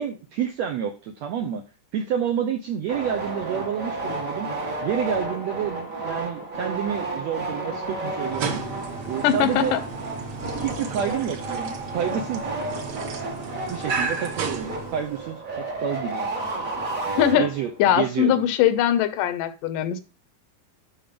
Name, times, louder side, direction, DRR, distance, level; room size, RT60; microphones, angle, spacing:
voice 1, 0.0-1.6 1.9-4.5 4.8-8.6 9.0-9.8 10.6-12.4 13.7-16.2 17.4-18.5, right 8 dB, 80° right, 4 dB, 1.5 m, -29 dB
sound 1, 2.9-17.9, right 2 dB, 40° right, 1.2 m, -32 dB
sound 2, 4.0-10.4, left 2 dB, 25° left, 1.0 m, -47 dB
sound 3, 8.2-15.4, right 4 dB, 60° right, 1.6 m, -33 dB
voice 2, 9.2-9.8 17.2-17.5 17.8-20.0, left 10 dB, 75° left, 12 dB, 2.1 m, -21 dB
12.5 x 4.4 x 5.2 m, 0.33 s
omnidirectional pair, 4.1 m